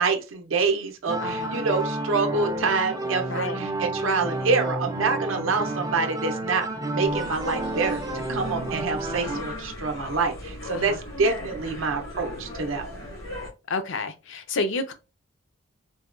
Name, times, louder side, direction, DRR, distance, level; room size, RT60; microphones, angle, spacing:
voice 1, 0.0-8.0 8.3-12.9, right 4 dB, 70° right, 0.5 m, -26 dB
sound 1, 1.1-9.4, right 2 dB, 15° right, 0.4 m, -30 dB
voice 2, 1.2-1.6 3.3-3.6 10.7-11.0 13.7-14.9, left 3 dB, 65° left, 0.5 m, -30 dB
sound 2, 7.0-13.5, left 1 dB, 90° left, 1.5 m, -37 dB
4.0 x 2.1 x 2.4 m
head